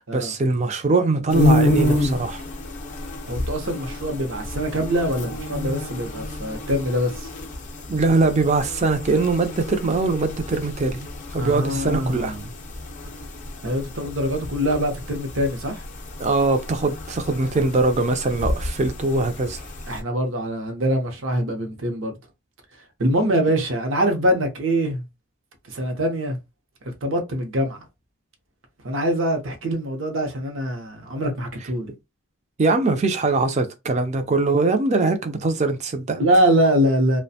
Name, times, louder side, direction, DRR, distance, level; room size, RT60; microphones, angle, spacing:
voice 1, 0.0-2.4 7.9-11.1 11.3-12.3 16.2-19.7 32.6-36.2, right 3 dB, 35° right, 0.4 m, -22 dB
sound 1, 1.3-20.0, left 1 dB, 35° left, 0.5 m, -29 dB
voice 2, 3.2-7.3 11.4-12.5 13.6-15.8 19.9-22.2 23.0-25.0 25.7-26.4 26.8-27.8 28.8-31.9 36.2-37.2, equal, 65° right, 0.7 m, -23 dB
2.4 x 2.1 x 2.7 m
head